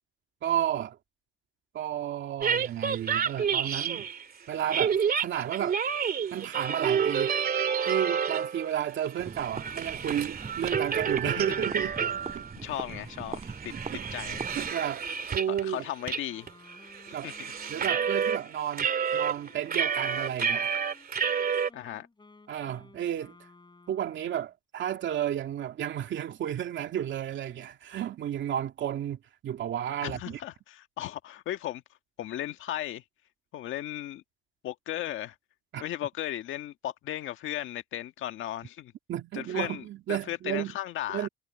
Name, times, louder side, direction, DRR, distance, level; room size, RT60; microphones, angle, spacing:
voice 1, 0.4-1.0 1.7-4.1 4.5-5.8 6.3-7.3 7.8-11.9 12.3-12.4 13.7-14.0 14.6-15.0 15.3-15.8 17.1-17.3 17.7-20.8 22.5-23.3 23.9-29.2 29.4-30.4 35.7-35.8 39.1-40.7 41.1-41.3, right 10 dB, 70° right, 2.6 m, -32 dB
sound 1, 2.4-4.2 4.7-8.7 9.0-12.5 12.9-13.0 13.4-15.6 16.1-16.2 16.5-18.4 18.7-21.7, right 7 dB, 50° right, 2.4 m, -29 dB
sound 2, 9.2-14.7, right 4 dB, 30° right, 5.8 m, -41 dB
voice 2, 12.6-13.7 14.1-14.5 15.5-16.5 17.1-17.5 21.7-22.1 30.0-31.8 32.2-33.0 33.5-34.2 34.6-35.4 35.8-38.9 39.3-41.3, left 13 dB, 80° left, 1.7 m, -36 dB
Wind instrument woodwind instrument, 16.3-24.5, left 3 dB, 20° left, 6.7 m, -55 dB
cardioid pair, 90°, 20 cm